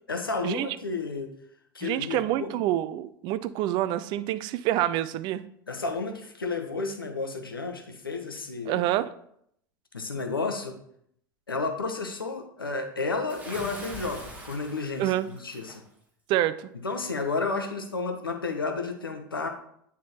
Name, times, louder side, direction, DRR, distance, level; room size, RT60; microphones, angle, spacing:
voice 1, 0.1-1.3 1.7-2.6 5.7-8.8 9.9-10.8 11.5-15.8 16.8-19.5, left 3 dB, 85° left, 5 dB, 0.8 m, -32 dB
voice 2, 1.8-5.5 8.7-9.1 15.0-15.3 16.3-16.7, right 13 dB, 40° right, 14 dB, 0.4 m, -27 dB
Bathtub (filling or washing) / Splash splatter, 13.3-15.8, right 1 dB, 15° right, 1.8 m, -42 dB
9.3 x 3.6 x 2.9 m, 0.71 s
figure-of-eight pair, 80°, 12 cm